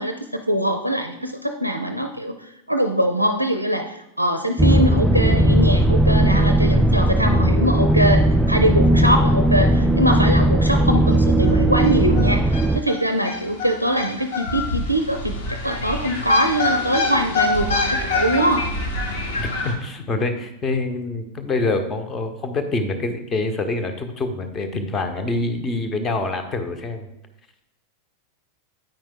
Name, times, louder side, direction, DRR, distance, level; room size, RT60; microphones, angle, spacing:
voice 1, 0.0-18.7, right 1 dB, 85° right, 5 dB, 0.4 m, -22 dB
sound 1, 4.6-12.8, right 1 dB, 5° right, 0.3 m, -17 dB
sound 2, 11.1-11.2 11.4-11.5 11.8-19.7, left 2 dB, 60° left, 1.5 m, -26 dB
voice 2, 19.4-27.1, left 2 dB, 20° left, 6 dB, 1.0 m, -26 dB
9.0 x 5.1 x 3.7 m, 0.84 s
figure-of-eight pair, 90°, 0 cm